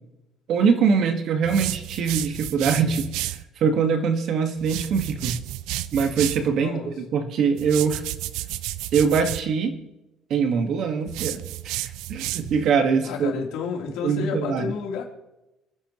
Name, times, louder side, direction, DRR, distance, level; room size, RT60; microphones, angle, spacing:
voice 1, 0.5-5.4 5.9-8.0 8.9-9.8 10.3-13.3 14.0-14.7, right 6 dB, 50° right, 6 dB, 1.7 m, -23 dB
sound 1, 1.4-3.4 4.6-6.5 7.6-9.5 11.1-12.7, right 15 dB, 85° right, 0.5 m, -32 dB
voice 2, 13.0-15.0, left 6 dB, 80° left, -1 dB, 3.5 m, -30 dB
29.0 x 10.0 x 3.1 m, 0.97 s
cardioid pair, 150°, 0 cm